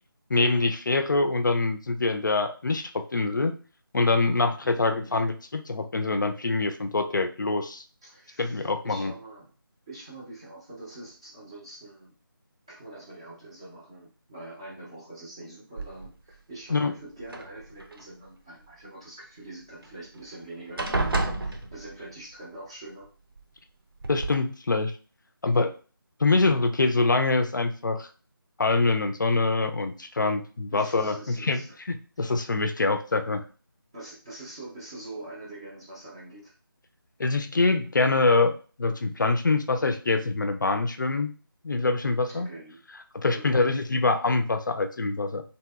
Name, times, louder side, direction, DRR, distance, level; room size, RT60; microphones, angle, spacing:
voice 1, 0.3-3.5 3.9-7.8 8.4-9.1 16.7-16.9 24.1-25.0 25.4-25.7 26.2-28.1 28.6-33.4 37.2-41.3 41.6-42.5 43.1-45.4, left 3 dB, 55° left, 7 dB, 0.4 m, -25 dB
voice 2, 4.6-5.3 8.0-9.5 9.9-12.1 12.7-23.1 30.7-31.8 32.2-32.4 33.9-36.5 42.3-42.8 43.3-43.7, right 2 dB, 10° right, -5 dB, 0.4 m, -44 dB
sound 1, 15.8-16.3 17.2-18.0 19.8-19.9 20.2-20.4 20.8-22.2 23.4-23.5 24.0-24.4, right 2 dB, 70° right, 0.7 m, -30 dB
2.9 x 2.7 x 2.3 m, 0.37 s
figure-of-eight pair, 165°, 12 cm